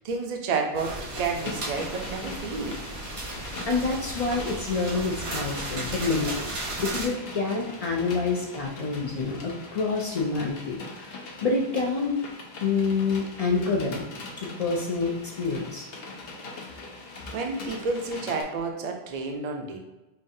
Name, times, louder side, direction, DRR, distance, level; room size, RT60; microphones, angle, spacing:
voice 1, 0.0-2.8 17.3-19.8, right 4 dB, 50° right, 3 dB, 0.5 m, -30 dB
sound 1, 0.7-7.1, right 2 dB, 80° right, 1.3 m, -35 dB
sound 2, 1.4-18.4, left 3 dB, 70° left, 0.9 m, -42 dB
voice 2, 3.7-6.5 6.8-12.2 12.6-14.1 14.4-15.9, left 4 dB, 50° left, -1 dB, 0.4 m, -27 dB
5.2 x 2.4 x 2.6 m, 1.0 s
omnidirectional pair, 1.1 m